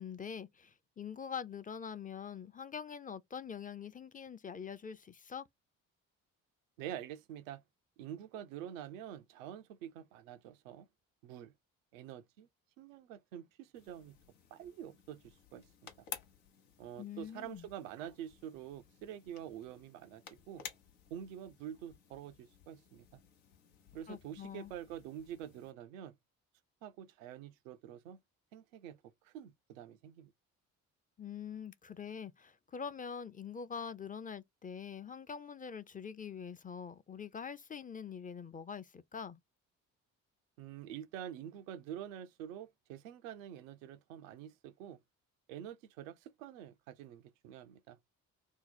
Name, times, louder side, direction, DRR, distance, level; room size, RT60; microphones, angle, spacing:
voice 1, 0.0-5.4 17.0-17.7 24.1-24.7 31.2-39.4, left 7 dB, 20° left, 0.5 m, -44 dB
voice 2, 6.8-7.6 8.0-10.9 11.2-11.5 11.9-12.5 12.8-14.2 14.5-16.1 16.8-20.6 21.1-23.1 23.9-26.2 26.8-28.2 28.5-30.3 40.6-45.0 45.5-48.0, right 10 dB, 85° right, 0.5 m, -47 dB
sound 1, 13.7-25.7, left 8 dB, 80° left, 0.8 m, -54 dB
2.9 x 2.1 x 4.1 m
hypercardioid pair, 55°, 38 cm